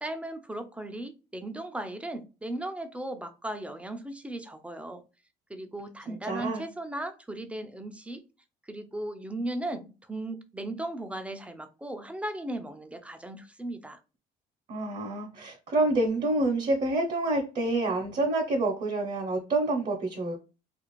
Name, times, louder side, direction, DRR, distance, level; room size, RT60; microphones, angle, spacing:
voice 1, 0.0-5.0 5.5-8.2 8.7-14.0, right 1 dB, 5° right, 0.4 m, -37 dB
voice 2, 6.1-6.6 14.7-20.5, right 2 dB, 40° right, 0.7 m, -28 dB
2.5 x 2.4 x 3.0 m
cardioid pair, 110°, 17 cm